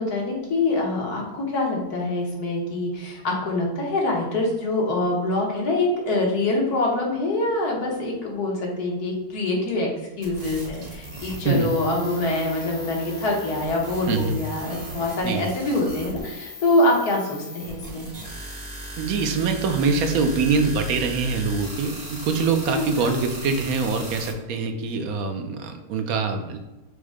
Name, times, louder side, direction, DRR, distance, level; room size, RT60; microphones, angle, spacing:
voice 1, 0.0-9.9 10.2-18.1 22.7-23.1, left 2 dB, 85° left, -2 dB, 1.7 m, -25 dB
sound 1, 10.2-24.3, equal, 30° right, 0.8 m, -37 dB
voice 2, 19.0-26.6, right 4 dB, 75° right, 6 dB, 1.1 m, -24 dB
4.8 x 2.1 x 4.7 m, 1.0 s
omnidirectional pair, 1.6 m